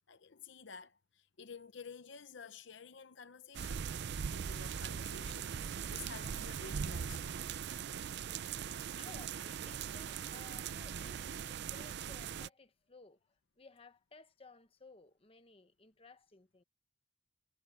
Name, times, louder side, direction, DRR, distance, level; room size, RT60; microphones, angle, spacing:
voice 1, 0.1-7.4, left 5 dB, 65° left, 0.8 m, -52 dB
sound 1, 3.5-12.5, right 7 dB, 60° right, 0.4 m, -40 dB
voice 2, 8.9-16.6, left 3 dB, 30° left, 1.1 m, -58 dB
head